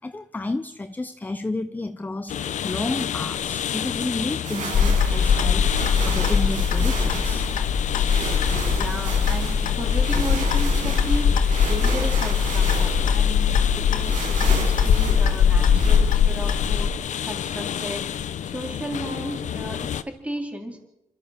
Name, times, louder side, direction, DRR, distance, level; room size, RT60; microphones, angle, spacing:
voice 1, 0.0-2.4 2.6-7.5, left 2 dB, 15° left, 11 dB, 0.7 m, -31 dB
sound 1, 2.3-20.0, left 9 dB, 65° left, 0.9 m, -31 dB
sound 2, 4.4-16.0, right 4 dB, 75° right, 5.8 m, -34 dB
Clock, 4.7-16.9, left 7 dB, 85° left, 2.0 m, -21 dB
voice 2, 8.7-11.3 11.7-13.5 13.8-16.9 17.2-18.1 18.4-20.8, equal, 10° right, 2 dB, 4.1 m, -34 dB
26.5 x 13.5 x 7.8 m, 0.87 s
cardioid pair, 120°, 13 cm